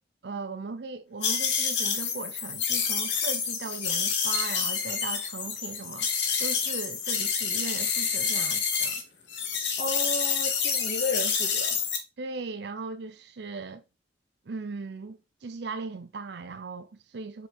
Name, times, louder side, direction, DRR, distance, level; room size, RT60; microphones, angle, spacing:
voice 1, 0.2-9.0 12.2-13.8 14.5-17.5, right 4 dB, 65° right, 0.5 m, -38 dB
sound 1, 1.2-9.0 9.3-12.0, left 6 dB, 85° left, 1.2 m, -28 dB
voice 2, 9.8-11.8, left 1 dB, 45° left, 2.1 m, -33 dB
4.9 x 4.8 x 4.2 m
head